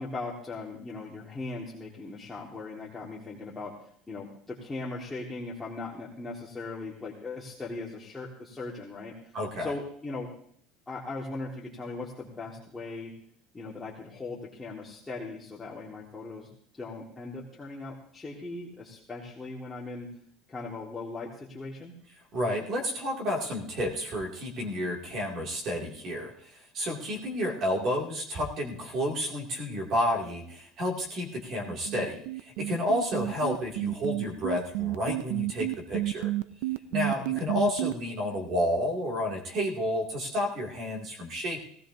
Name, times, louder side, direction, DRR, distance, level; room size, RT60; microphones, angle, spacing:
voice 1, 0.0-3.7 4.1-10.3 10.9-13.1 13.5-20.1 20.5-21.9 37.3-37.4, left 3 dB, 10° left, -5 dB, 1.7 m, -39 dB
voice 2, 9.3-9.7 22.3-36.3 36.9-41.6, left 1 dB, 45° right, 0 dB, 2.3 m, -31 dB
sound 1, 31.6-37.9, right 17 dB, 85° right, 0.6 m, -30 dB
18.0 x 15.5 x 2.7 m, 0.63 s
cardioid pair, 145°, 0 cm